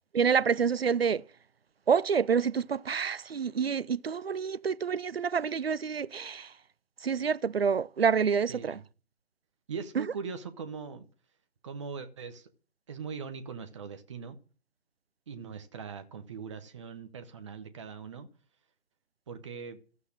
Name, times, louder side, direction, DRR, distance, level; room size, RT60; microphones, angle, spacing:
voice 1, 0.1-1.2 1.9-6.5 7.0-8.8 10.0-10.1, right 6 dB, 65° right, 0.6 m, -27 dB
voice 2, 8.5-8.8 9.7-11.1 11.6-12.5 12.9-14.4 15.3-18.3 19.3-19.8, right 6 dB, 25° right, 1.3 m, -41 dB
14.5 x 8.1 x 8.8 m
figure-of-eight pair, 145°, 33 cm